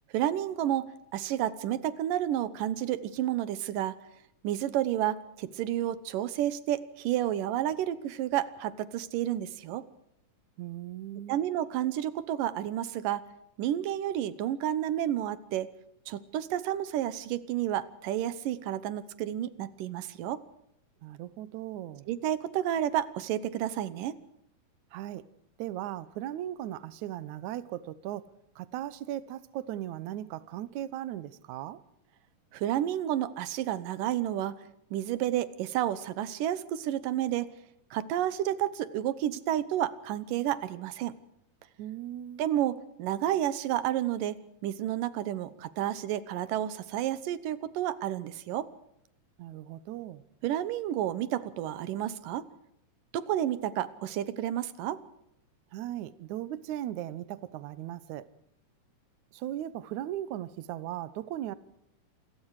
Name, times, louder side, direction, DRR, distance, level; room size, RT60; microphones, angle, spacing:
voice 1, 0.1-0.9 1.1-4.0 4.4-9.8 11.3-13.2 13.6-15.7 16.1-20.4 22.1-24.2 32.5-34.5 34.9-37.5 37.9-41.2 42.4-48.7 50.4-52.5 53.1-55.0, right 12 dB, 90° right, 2.7 m, -30 dB
voice 2, 10.6-11.4 21.0-22.1 24.9-25.3 25.6-28.3 28.6-31.8 41.8-42.4 49.4-50.2 55.7-58.3 59.3-61.6, right 12 dB, 70° right, 2.2 m, -38 dB
28.0 x 22.0 x 4.9 m
omnidirectional pair, 3.7 m